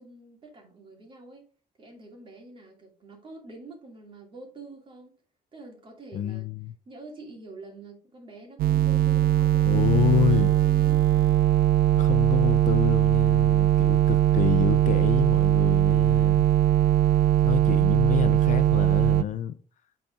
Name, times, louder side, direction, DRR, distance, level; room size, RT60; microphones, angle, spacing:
voice 1, 0.0-1.5 1.8-5.2 5.5-6.5 6.9-11.4, right 3 dB, 35° right, 2.6 m, -47 dB
voice 2, 6.1-6.7 9.7-10.5 12.0-16.5 17.4-19.6, left 10 dB, 55° left, 0.6 m, -28 dB
sound 1, 8.6-19.2, right 12 dB, 85° right, 0.4 m, -20 dB
9.4 x 4.3 x 3.6 m
cardioid pair, 145°, 15 cm